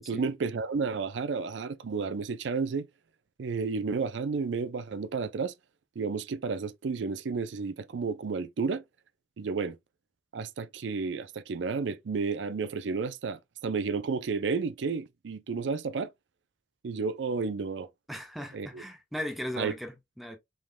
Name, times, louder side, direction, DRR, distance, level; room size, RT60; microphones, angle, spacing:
voice 1, 0.1-2.9 3.4-5.5 6.0-8.8 9.4-9.8 10.3-16.1 16.8-17.9 18.5-18.8 19.6-19.7, right 4 dB, 75° right, 0.4 m, -31 dB
voice 2, 18.1-20.4, left 1 dB, ahead, 1.0 m, -37 dB
5.1 x 3.7 x 2.2 m
head